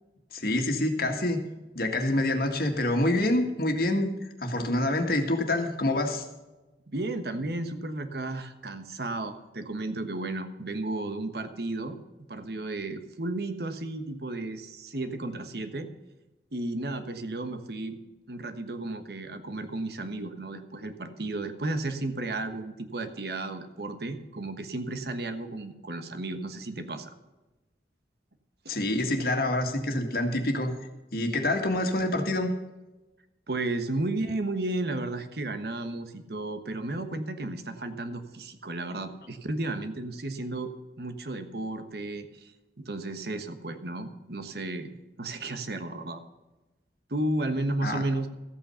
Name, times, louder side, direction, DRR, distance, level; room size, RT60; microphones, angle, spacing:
voice 1, 0.3-1.4 1.7-4.1 4.4-6.3 28.7-30.7 31.1-32.5 47.8-48.0, left 1 dB, 55° left, 4 dB, 1.8 m, -26 dB
voice 2, 6.9-12.0 12.3-15.9 16.5-18.0 18.3-27.1 33.5-42.5 42.8-44.9 45.2-46.2 47.1-48.3, right 2 dB, 60° right, 8 dB, 1.2 m, -33 dB
14.5 x 8.5 x 5.6 m, 1.1 s
head